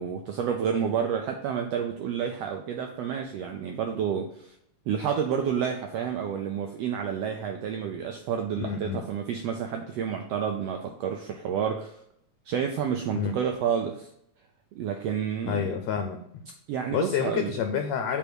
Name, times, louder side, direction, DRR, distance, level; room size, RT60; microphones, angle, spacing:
voice 1, 0.0-4.5 4.9-12.0 12.5-14.1 14.7-15.7 16.7-17.5, right 7 dB, 80° right, 4 dB, 1.4 m, -30 dB
voice 2, 8.6-9.0 13.1-13.4 15.5-16.4 16.9-18.2, left 7 dB, 75° left, 6 dB, 1.7 m, -29 dB
8.3 x 3.4 x 6.1 m, 0.73 s
omnidirectional pair, 3.5 m